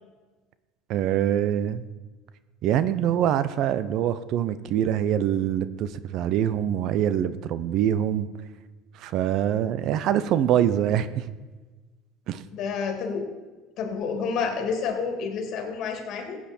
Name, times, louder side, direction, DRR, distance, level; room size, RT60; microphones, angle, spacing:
voice 1, 0.9-1.9 2.6-8.3 8.9-11.3 12.3-12.4, right 10 dB, 60° right, 14 dB, 0.6 m, -24 dB
voice 2, 12.5-13.3 13.8-16.4, left 5 dB, 55° left, 4 dB, 2.4 m, -29 dB
15.0 x 8.7 x 4.4 m, 1.2 s
supercardioid pair, 105°, 0 cm